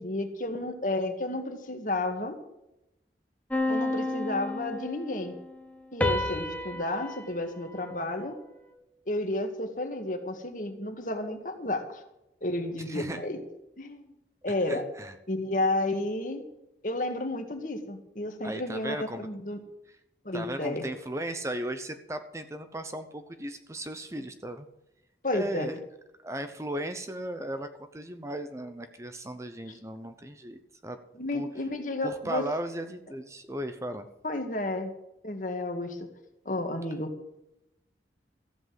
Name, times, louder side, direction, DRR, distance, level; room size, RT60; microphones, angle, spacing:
voice 1, 0.0-2.4 3.7-5.4 5.9-8.4 9.1-12.0 12.4-13.4 13.8-14.0 14.4-14.8 15.3-16.4 16.8-19.6 20.3-20.9 25.2-25.7 31.2-32.4 34.2-34.9 35.2-36.0 36.5-37.1, left 2 dB, 50° left, 5 dB, 2.0 m, -31 dB
sound 1, 3.5-5.3 6.0-8.6, left 2 dB, 10° left, 1.2 m, -32 dB
voice 2, 12.8-13.2 14.7-15.1 18.4-19.3 20.3-24.7 25.3-25.8 26.2-31.0 31.3-31.5 32.0-34.1, right 1 dB, 15° right, 8 dB, 0.8 m, -36 dB
14.5 x 8.0 x 7.6 m, 0.88 s
head